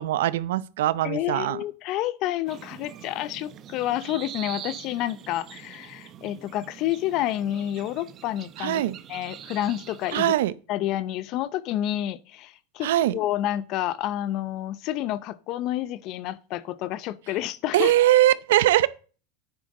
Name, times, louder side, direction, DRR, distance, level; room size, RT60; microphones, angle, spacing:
voice 1, 0.0-1.6 8.6-9.0 10.1-10.5 12.8-13.1 17.7-18.9, right 14 dB, 80° right, 0.7 m, -21 dB
voice 2, 1.0-8.8 9.1-10.3 10.7-17.9, left 13 dB, 45° left, 0.7 m, -29 dB
sound 1, 2.5-10.1, right 10 dB, 30° right, 0.8 m, -43 dB
10.0 x 9.8 x 3.8 m
supercardioid pair, 145°, 0 cm